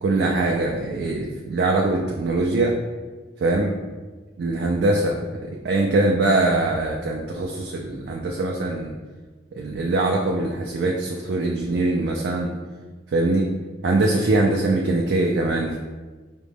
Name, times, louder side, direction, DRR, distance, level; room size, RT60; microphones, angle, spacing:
voice 1, 0.0-2.8 3.4-3.7 4.4-8.9 9.5-12.5 13.1-13.5 13.8-15.8, right 2 dB, 65° right, 0 dB, 0.4 m, -22 dB
4.8 x 2.1 x 3.4 m, 1.3 s
head